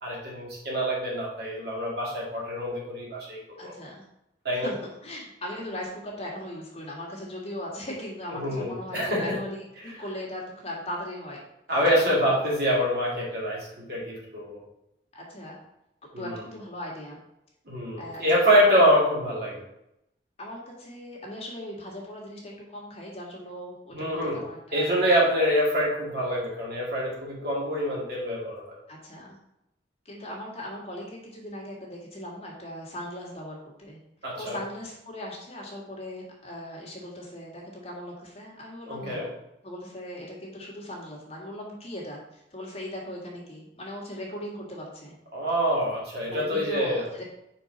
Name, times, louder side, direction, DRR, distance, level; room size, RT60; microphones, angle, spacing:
voice 1, 0.0-3.7 4.4-4.7 8.4-9.4 11.7-14.6 16.1-16.4 17.7-19.6 23.9-24.4 24.7-28.8 34.2-34.6 38.9-39.3 45.3-47.1, equal, 60° right, -4 dB, 2.2 m, -25 dB
voice 2, 3.6-4.0 4.6-4.8 5.0-11.4 12.0-12.2 15.1-15.6 16.2-17.2 18.0-18.8 20.4-24.9 28.9-29.4 30.1-34.0 34.4-39.3 39.6-45.1 46.3-47.2, left 1 dB, 35° left, -3 dB, 1.7 m, -38 dB
5.3 x 4.5 x 3.9 m, 0.84 s
head